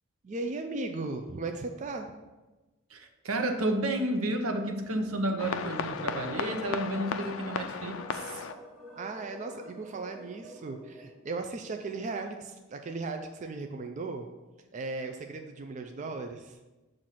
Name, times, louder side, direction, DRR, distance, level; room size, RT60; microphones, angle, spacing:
voice 1, 0.2-2.1 9.0-14.3 14.7-16.6, right 3 dB, 35° right, 5 dB, 0.3 m, -37 dB
voice 2, 2.9-8.5, right 1 dB, 85° right, 5 dB, 0.7 m, -31 dB
sound 1, 4.8-11.2, equal, ahead, 1.3 m, -48 dB
sound 2, 5.4-8.5, left 6 dB, 65° left, 0.3 m, -35 dB
7.5 x 2.6 x 5.7 m, 1.1 s
head